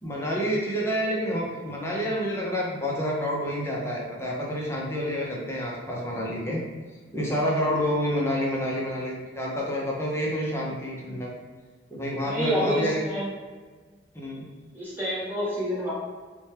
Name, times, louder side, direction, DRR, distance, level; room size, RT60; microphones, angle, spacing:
voice 1, 0.0-6.6 7.1-11.3 11.9-13.0 14.1-14.5, equal, 15° left, -4 dB, 0.5 m, -28 dB
voice 2, 12.2-13.3 14.7-15.9, equal, 10° right, -9 dB, 1.1 m, -29 dB
4.2 x 2.2 x 3.2 m, 1.5 s
head